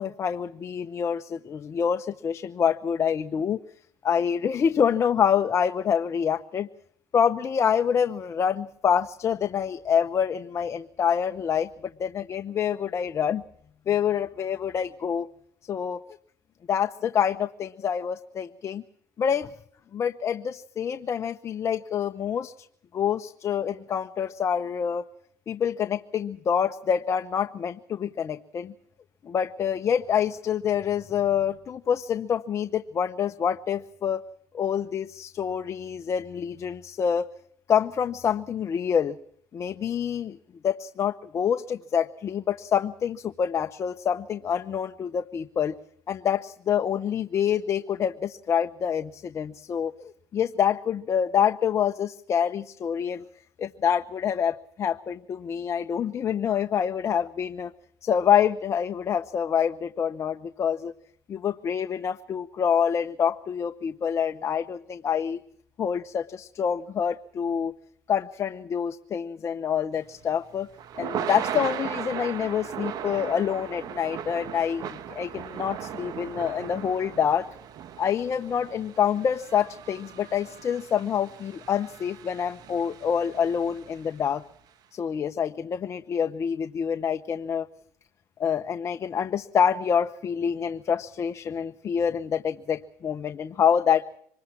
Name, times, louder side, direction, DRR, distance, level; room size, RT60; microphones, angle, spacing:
voice 1, 0.0-3.6 4.0-6.7 7.1-11.7 12.0-13.4 13.9-15.3 15.7-16.0 16.7-18.8 19.2-19.5 19.9-22.7 22.9-25.0 25.5-28.7 29.2-34.2 34.5-37.3 37.7-39.2 39.5-40.4 40.6-45.7 46.1-53.2 53.6-57.7 58.0-60.9 61.3-65.4 65.8-67.7 68.1-70.7 71.0-77.5 78.0-84.4 84.9-87.7 88.4-94.1, left 8 dB, 40° left, 9 dB, 0.9 m, -26 dB
Thunder / Rain, 70.0-84.3, right 9 dB, 55° right, 1.4 m, -38 dB
25.0 x 21.0 x 6.0 m, 0.67 s
supercardioid pair, 100°, 8 cm